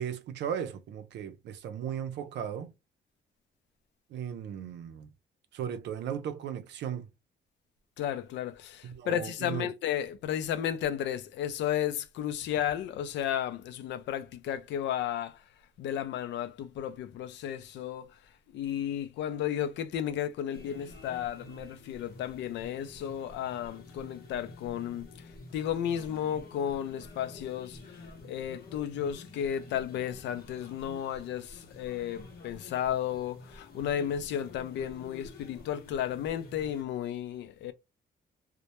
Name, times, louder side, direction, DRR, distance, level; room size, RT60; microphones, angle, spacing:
voice 1, 0.0-2.7 4.1-5.1 5.5-7.1 8.8-9.7, right 8 dB, 75° right, 0.5 m, -36 dB
voice 2, 8.0-15.4 15.8-18.1 18.5-25.1 25.5-27.8 28.2-37.7, left 10 dB, 85° left, 0.4 m, -33 dB
sound 1, 20.5-36.8, left 2 dB, 60° left, 0.8 m, -49 dB
2.1 x 2.1 x 2.8 m
cardioid pair, 125°, 18 cm